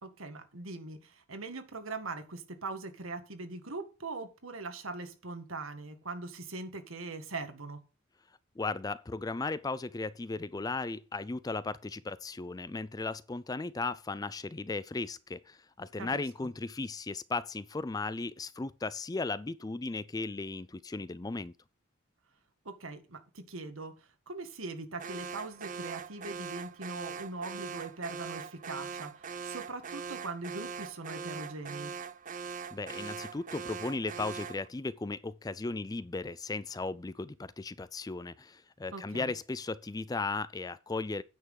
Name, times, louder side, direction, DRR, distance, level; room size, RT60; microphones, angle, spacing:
voice 1, 0.0-7.8 16.0-16.2 22.7-31.9 38.9-39.3, right 3 dB, 80° right, 1.8 m, -41 dB
voice 2, 8.6-21.5 32.7-41.2, left 3 dB, 20° left, 0.4 m, -36 dB
Alarm, 25.0-34.7, right 6 dB, 40° right, 0.6 m, -41 dB
9.5 x 5.9 x 6.4 m
head